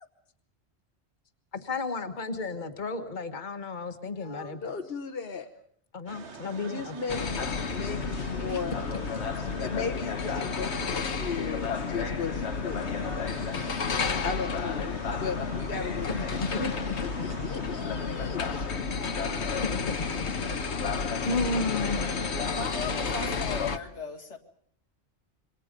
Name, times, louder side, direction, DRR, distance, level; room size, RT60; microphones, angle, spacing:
voice 1, 1.5-4.6 5.9-7.1 8.4-9.3 15.1-15.2 16.1-16.9 17.3-17.7 19.6-20.8 21.2-22.3, left 3 dB, 45° left, 7 dB, 1.7 m, -34 dB
voice 2, 4.0-5.5 6.7-8.8 9.6-13.2 13.5-16.7 17.0-18.6, left 5 dB, 60° left, 5 dB, 1.4 m, -36 dB
sound 1, 6.1-23.3, right 4 dB, 75° right, 1.7 m, -45 dB
sound 2, 7.1-23.8, left 5 dB, 75° left, 1.4 m, -31 dB
voice 3, 22.4-24.4, left 4 dB, 90° left, 4 dB, 2.4 m, -37 dB
27.0 x 23.0 x 5.2 m, 0.63 s
omnidirectional pair, 1.2 m